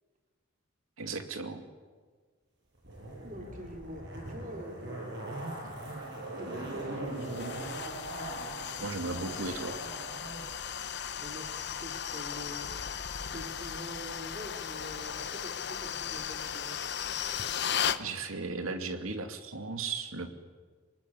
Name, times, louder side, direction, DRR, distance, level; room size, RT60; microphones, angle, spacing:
voice 1, 1.0-1.6 8.8-9.8 18.0-20.3, right 3 dB, 90° right, 7 dB, 2.5 m, -36 dB
Zipper (clothing), 2.8-10.5 10.8-10.9, right 1 dB, 55° right, 7.7 m, -40 dB
voice 2, 3.2-5.1 6.4-7.5 11.2-12.7 13.0-16.8, equal, 40° right, 3 dB, 3.3 m, -45 dB
sound 1, 7.2-18.0, left 8 dB, 55° left, 1.0 m, -36 dB
25.5 x 19.5 x 9.7 m, 1.5 s
head